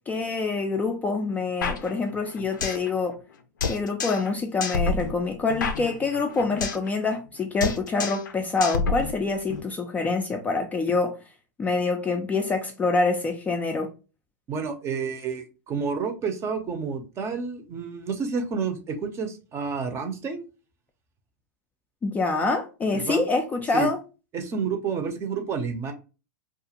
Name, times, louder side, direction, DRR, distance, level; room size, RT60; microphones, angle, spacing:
voice 1, 0.1-3.2 3.7-11.2 11.6-13.9 22.0-24.0, left 3 dB, 15° left, 0.3 m, -26 dB
sound 1, 1.6-2.9 3.1-3.2 3.6-4.3 4.6-6.9 7.1-7.3 7.6-8.3 8.6-9.6, left 4 dB, 85° left, 0.4 m, -29 dB
voice 2, 14.5-20.4 22.9-23.2 23.7-23.9 24.3-25.9, right 5 dB, 25° right, 0.6 m, -30 dB
2.4 x 2.4 x 2.8 m
hypercardioid pair, 115°, 10 cm